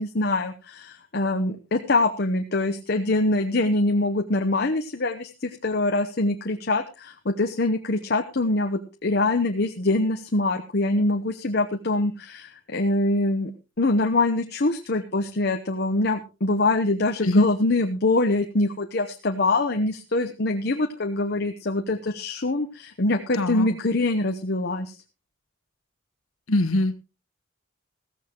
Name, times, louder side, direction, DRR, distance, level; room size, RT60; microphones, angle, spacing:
voice 1, 0.0-13.5 13.8-24.9, left 2 dB, 50° left, 6 dB, 0.9 m, -24 dB
voice 2, 23.3-23.7 26.5-27.0, left 1 dB, 90° left, 10 dB, 1.4 m, -22 dB
15.5 x 14.5 x 3.0 m, 0.29 s
head